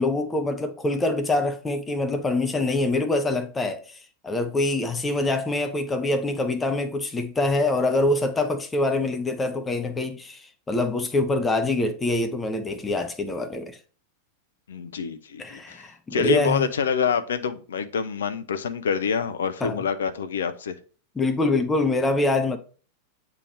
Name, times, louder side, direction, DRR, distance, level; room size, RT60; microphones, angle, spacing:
voice 1, 0.0-13.8 15.4-16.7 19.6-19.8 21.2-22.6, left 2 dB, 15° left, 0.7 m, -25 dB
voice 2, 14.7-15.8 16.1-20.8, left 6 dB, 65° left, 0.6 m, -26 dB
8.3 x 3.6 x 3.2 m
figure-of-eight pair, 90°, 0 cm